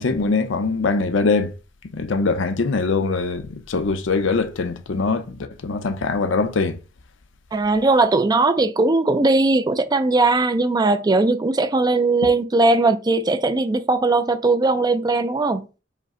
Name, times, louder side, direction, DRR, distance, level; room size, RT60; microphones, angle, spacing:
voice 1, 0.0-1.5 1.9-6.8, left 4 dB, 85° left, 0.6 m, -22 dB
voice 2, 7.5-15.7, right 3 dB, 20° right, 0.3 m, -19 dB
5.0 x 2.1 x 3.6 m
head